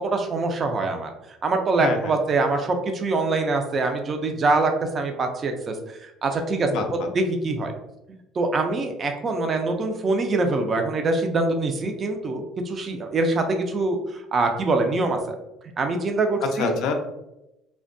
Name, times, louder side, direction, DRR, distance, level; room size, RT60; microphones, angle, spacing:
voice 1, 0.0-7.7 8.4-15.4 15.8-16.8, right 3 dB, 30° right, 4 dB, 0.3 m, -24 dB
voice 2, 1.8-2.1 6.7-7.1 16.6-16.9, left 5 dB, 65° left, 5 dB, 0.4 m, -26 dB
2.6 x 2.1 x 2.5 m, 0.90 s
cardioid pair, 145°, 0 cm